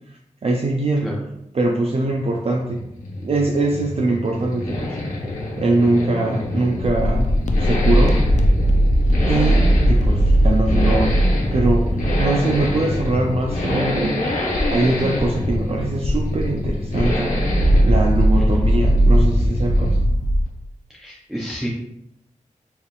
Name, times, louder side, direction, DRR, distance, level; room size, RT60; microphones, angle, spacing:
voice 1, 0.1-1.1 1.5-2.9 3.2-5.3 5.6-8.3 9.2-17.3 17.8-20.0, right 2 dB, 50° right, 0 dB, 0.4 m, -22 dB
Accelerating revving vroom, 2.1-20.2 20.5-20.6, left 1 dB, 85° left, 1.0 m, -27 dB
sound 1, 6.8-20.4, equal, 65° left, 0.4 m, -19 dB
voice 2, 21.0-21.7, equal, 5° right, -4 dB, 0.6 m, -29 dB
4.3 x 3.4 x 2.4 m, 0.80 s
wide cardioid pair, 80°, 13 cm